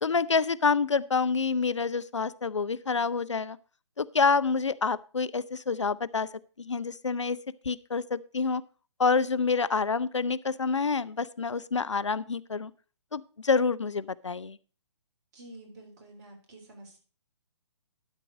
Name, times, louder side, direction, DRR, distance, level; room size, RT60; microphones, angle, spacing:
voice 1, 0.0-3.6 4.0-6.3 6.7-7.4 7.7-8.6 9.0-12.7 13.1-14.6, left 5 dB, 80° left, 18 dB, 0.5 m, -27 dB
voice 2, 15.3-17.0, right 1 dB, 35° right, 1 dB, 3.7 m, -49 dB
12.0 x 4.5 x 6.2 m, 0.38 s
figure-of-eight pair, 130°, 15 cm